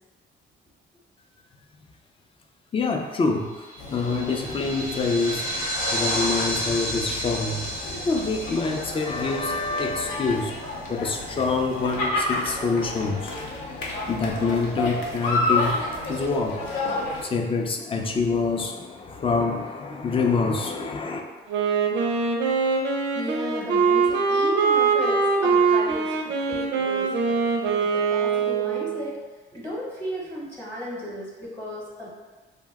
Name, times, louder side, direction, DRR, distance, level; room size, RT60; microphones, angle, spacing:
voice 1, 2.7-5.5 5.9-7.7 8.0-10.6 10.9-13.3 14.1-15.8 16.1-16.6 17.2-21.2, left 4 dB, 25° left, 3 dB, 0.4 m, -26 dB
sound 1, 3.6-10.5, equal, 45° left, 0.8 m, -31 dB
sound 2, 3.8-17.2, left 2 dB, 80° left, 0.6 m, -31 dB
Wind instrument woodwind instrument, 21.5-29.1, right 5 dB, 65° right, 0.4 m, -23 dB
voice 2, 23.1-29.2 29.5-32.1, equal, 10° left, -6 dB, 0.9 m, -35 dB
2.7 x 2.1 x 3.5 m, 1.3 s
cardioid pair, 90°, 20 cm